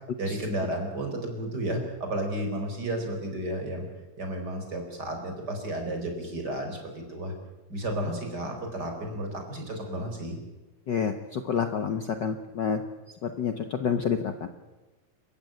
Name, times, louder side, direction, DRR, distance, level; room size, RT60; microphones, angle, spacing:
voice 1, 0.2-3.9 4.2-7.3 7.7-10.4, right 1 dB, 30° right, 3 dB, 5.2 m, -32 dB
voice 2, 10.9-12.8 13.2-14.5, left 7 dB, 75° left, 7 dB, 1.0 m, -28 dB
29.0 x 15.0 x 9.2 m, 1.1 s
omnidirectional pair, 3.6 m